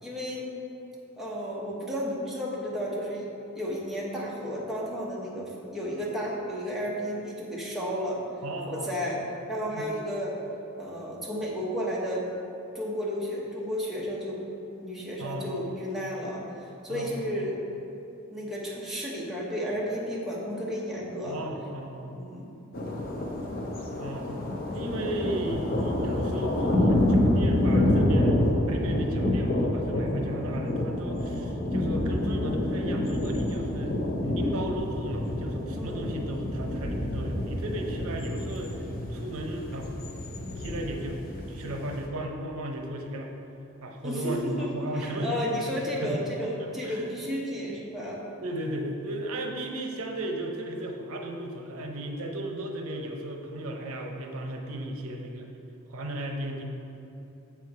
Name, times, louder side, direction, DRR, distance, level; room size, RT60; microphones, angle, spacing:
voice 1, 0.0-0.5 1.2-3.3 3.5-8.2 8.7-9.2 9.5-10.3 10.8-12.3 12.7-14.4 14.8-17.6 18.3-21.4 22.1-22.5 35.7-36.2 44.0-48.2, equal, ahead, -5 dB, 0.9 m, -32 dB
voice 2, 8.4-8.9 9.7-9.9 15.2-15.6 16.9-17.1 21.2-22.2 24.0-24.3 24.7-28.4 28.7-39.9 40.6-43.3 43.8-45.5 45.9-46.2 46.6-47.0 48.4-55.5 55.9-56.6, right 1 dB, 85° right, 3 dB, 0.7 m, -35 dB
sound 1, 22.7-42.1, left 1 dB, 45° left, 0.7 m, -28 dB
7.2 x 4.6 x 4.7 m, 2.9 s
head